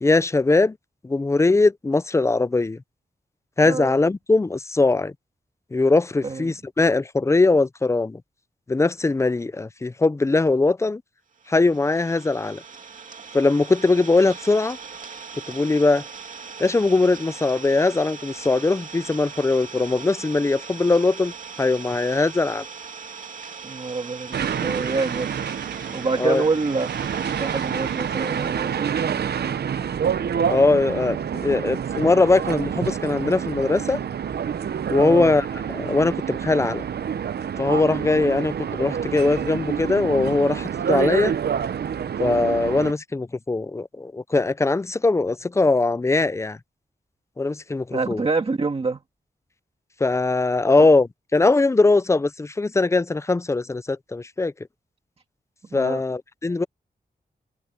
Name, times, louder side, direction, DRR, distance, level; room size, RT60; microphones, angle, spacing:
voice 1, 0.0-0.8 1.0-2.8 3.6-5.1 5.7-8.2 8.7-11.0 11.5-12.6 13.3-14.8 15.5-16.0 16.6-21.3 21.6-22.7 26.2-26.4 30.5-34.0 34.9-36.8 37.6-41.3 42.2-46.6 47.4-48.2 50.0-54.5 55.7-56.6, left 3 dB, 15° left, 0.4 m, -21 dB
voice 2, 6.2-6.6 23.6-25.5 25.9-26.9 27.4-29.7 35.0-35.4 47.9-49.0 50.8-50.9 55.7-56.0, right 4 dB, 35° right, 1.7 m, -27 dB
Idling, 11.4-29.1, right 5 dB, 50° right, 2.6 m, -40 dB
sound 1, 24.3-42.9, right 8 dB, 75° right, 0.7 m, -27 dB
wide cardioid pair, 150°, 17 cm